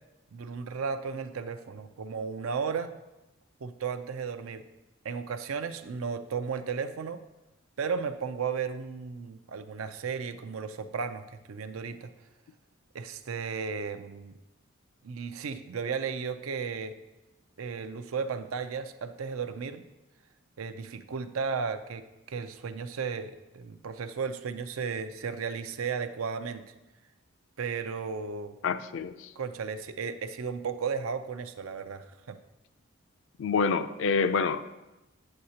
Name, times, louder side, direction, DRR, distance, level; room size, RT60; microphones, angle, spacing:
voice 1, 0.3-3.0 3.6-4.6 5.0-7.2 7.8-12.1 12.9-14.4 15.0-17.0 17.6-19.8 20.6-26.6 27.6-28.5 29.4-32.4, right 5 dB, 85° right, 10 dB, 0.5 m, -34 dB
voice 2, 28.6-29.3 33.4-34.7, left 5 dB, 65° left, 12 dB, 0.4 m, -27 dB
8.5 x 7.7 x 2.8 m, 1.0 s
head